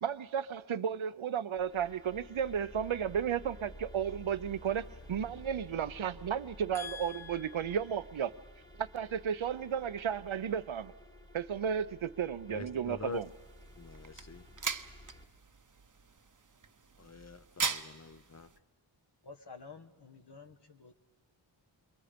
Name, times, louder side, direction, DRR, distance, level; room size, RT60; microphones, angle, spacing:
voice 1, 0.0-8.3 8.8-10.9 11.3-13.3, right 8 dB, 75° right, 0.7 m, -34 dB
sound 1, 1.5-15.2, equal, 10° left, 1.4 m, -53 dB
voice 2, 6.7-7.6 12.5-13.2 13.8-14.4 17.0-18.5, left 4 dB, 35° left, 0.8 m, -45 dB
sound 2, 13.1-18.6, right 5 dB, 40° right, 0.8 m, -40 dB
voice 3, 19.2-20.9, left 4 dB, 55° left, 1.3 m, -51 dB
29.0 x 22.5 x 5.1 m
wide cardioid pair, 50°, 49 cm